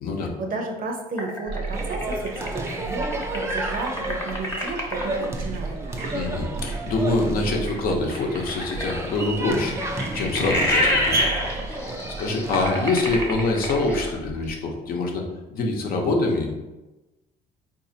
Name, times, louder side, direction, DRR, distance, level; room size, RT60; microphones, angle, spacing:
voice 1, 0.4-5.8, right 3 dB, 55° right, 2 dB, 0.7 m, -32 dB
sound 1, 1.2-5.3 8.1-14.2, left 1 dB, 15° left, 0.8 m, -27 dB
sound 2, 1.5-14.5, right 3 dB, 90° right, 1.1 m, -36 dB
sound 3, 1.7-13.3, right 2 dB, 15° right, 0.4 m, -31 dB
voice 2, 6.1-11.3 12.1-15.2 15.5-16.6, left 3 dB, 60° left, 1 dB, 0.8 m, -25 dB
3.9 x 2.6 x 2.7 m, 1.1 s
cardioid pair, 110°, 17 cm